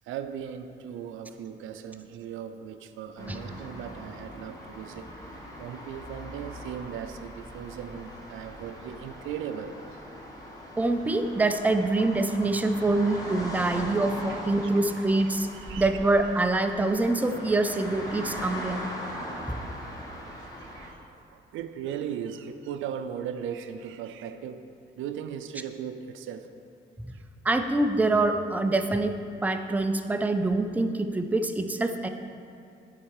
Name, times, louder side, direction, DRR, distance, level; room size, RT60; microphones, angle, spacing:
voice 1, 0.0-10.0 14.3-14.7 15.1-15.2 15.5-16.0 20.3-24.6 25.0-26.5 27.1-27.2, right 8 dB, 85° right, 9 dB, 0.5 m, -38 dB
sound 1, 3.2-20.9, equal, 20° left, 1.6 m, -40 dB
voice 2, 10.8-15.5 15.8-18.9 19.5-19.6 27.0-27.2 27.4-29.2 29.4-32.1, right 2 dB, 10° right, 7 dB, 0.5 m, -25 dB
10.5 x 4.4 x 4.8 m, 2.5 s
cardioid pair, 90°, 20 cm